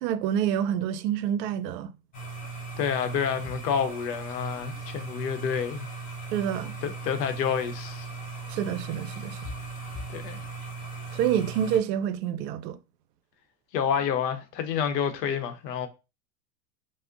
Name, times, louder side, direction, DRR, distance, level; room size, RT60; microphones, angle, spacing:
voice 1, 0.0-1.9 6.3-6.7 8.5-9.4 11.1-12.8, right 9 dB, 75° right, 0.6 m, -27 dB
sound 1, 2.1-11.8, right 3 dB, 15° left, 0.5 m, -38 dB
voice 2, 2.8-5.9 6.8-8.1 10.1-10.4 13.7-15.9, left 7 dB, 80° left, 0.8 m, -28 dB
3.5 x 2.1 x 2.5 m
supercardioid pair, 125°, 49 cm